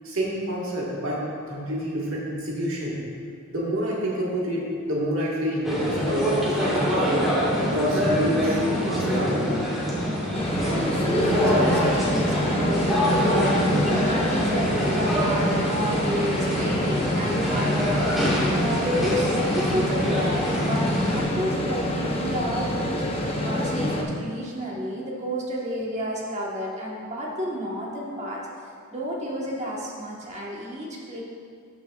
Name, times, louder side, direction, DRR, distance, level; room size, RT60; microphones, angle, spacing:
voice 1, 0.0-3.0 3.5-7.3 7.6-9.3, equal, 70° right, -5 dB, 1.7 m, -28 dB
sound 1, 5.6-21.2, equal, ahead, 1.8 m, -25 dB
sound 2, 10.3-24.0, left 1 dB, 30° left, 0.8 m, -27 dB
voice 2, 10.6-28.4 28.9-31.2, equal, 35° right, -4 dB, 1.4 m, -31 dB
13.0 x 6.2 x 2.4 m, 2.3 s
head